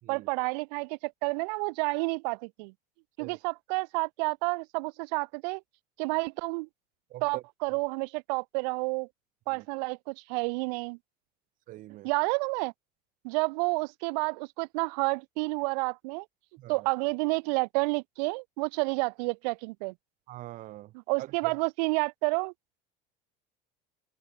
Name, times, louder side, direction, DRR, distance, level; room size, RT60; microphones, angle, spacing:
voice 1, 0.1-2.7 3.2-5.6 6.0-6.7 7.2-9.1 9.5-11.0 12.0-12.7 13.2-16.2 16.7-19.9 21.1-22.5, right 30 dB, 80° right, 0.8 m, -30 dB
voice 2, 7.1-7.4 7.7-7.8 9.5-9.7 11.7-12.1 16.6-16.9 20.3-21.6, right 16 dB, 40° right, 4.9 m, -44 dB
cardioid pair, 180°, 21 cm